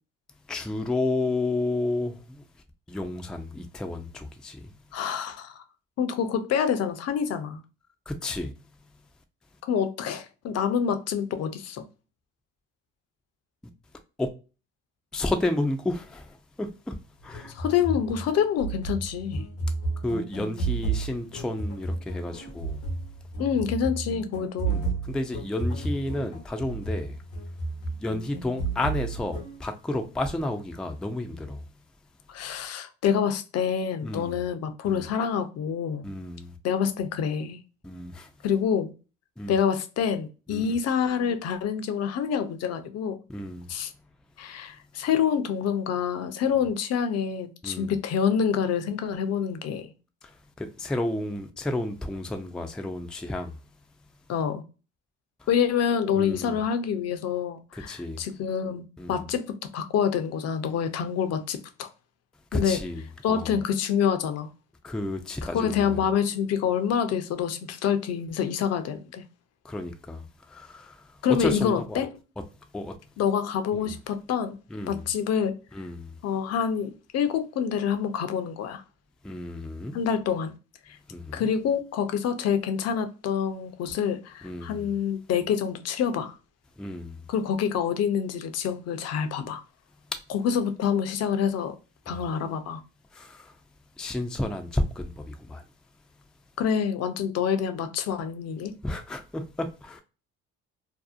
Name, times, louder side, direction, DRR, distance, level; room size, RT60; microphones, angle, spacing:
voice 1, 0.5-2.4 2.9-4.7 8.1-8.5 14.2-14.3 15.1-17.0 17.2-17.6 20.0-22.8 24.6-27.2 28.0-31.6 34.0-34.4 34.8-35.1 36.0-36.6 37.8-38.3 39.4-39.6 40.5-40.7 43.3-43.7 47.6-47.9 50.2-53.6 55.4-55.5 56.1-56.6 57.7-58.2 59.0-59.2 62.5-63.5 64.8-66.0 69.6-72.0 72.7-72.9 73.8-73.9 74.7-75.1 75.7-76.2 79.2-80.0 81.1-81.5 84.4-84.9 86.8-87.2 92.1-92.2 93.1-93.6 94.0-95.6 98.8-100.0, left 2 dB, 5° left, 0.3 m, -32 dB
voice 2, 4.9-5.6 6.0-7.6 9.6-11.8 17.5-19.5 23.4-24.8 32.3-36.1 36.6-37.6 38.4-38.9 39.5-43.2 43.7-43.9 44.4-49.9 54.3-54.6 55.5-61.9 62.5-62.8 63.2-64.5 65.5-69.2 71.2-72.1 73.2-74.6 74.9-75.5 76.2-78.8 79.9-80.5 80.9-81.0 81.3-86.3 87.3-89.6 90.3-91.8 92.1-92.8 96.6-98.7, left 7 dB, 55° left, 0.5 m, -27 dB
sound 1, 17.2-29.6, right 3 dB, 85° left, 0.9 m, -32 dB
2.7 x 2.0 x 2.3 m
supercardioid pair, 65°, 31 cm